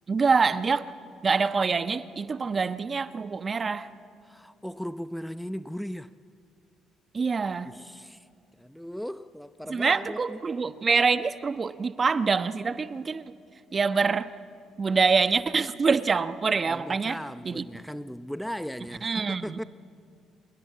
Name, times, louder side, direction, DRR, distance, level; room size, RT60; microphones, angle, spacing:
voice 1, 0.1-0.8 1.2-3.9 7.1-7.7 9.7-13.2 13.7-14.3 14.8-17.2 17.4-17.7 19.0-19.6, right 5 dB, 40° right, 11 dB, 1.1 m, -25 dB
voice 2, 4.2-6.1 7.6-8.3 8.6-10.4 16.7-19.6, equal, ahead, 13 dB, 0.7 m, -37 dB
26.5 x 22.0 x 8.5 m, 2.3 s
hypercardioid pair, 55°, 0 cm